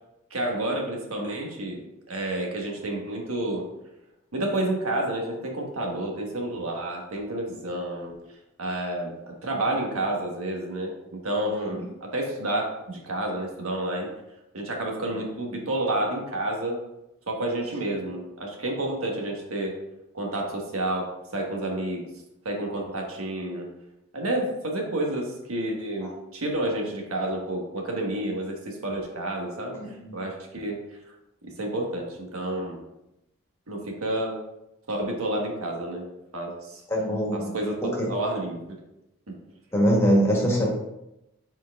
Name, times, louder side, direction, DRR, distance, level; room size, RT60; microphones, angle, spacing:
voice 1, 0.3-1.8 2.1-3.7 4.3-8.1 8.6-14.1 14.5-16.8 17.3-19.8 20.1-22.1 22.4-23.7 24.1-31.0 31.4-32.8 33.7-34.4 34.9-36.1 36.3-36.8 37.3-37.7 38.1-38.6 39.3-39.4, right 1 dB, 85° right, 0 dB, 1.4 m, -30 dB
voice 2, 29.7-30.2 36.9-37.5 38.0-38.1 39.7-40.7, equal, 10° left, -3 dB, 1.6 m, -22 dB
6.8 x 4.6 x 3.6 m, 0.89 s
head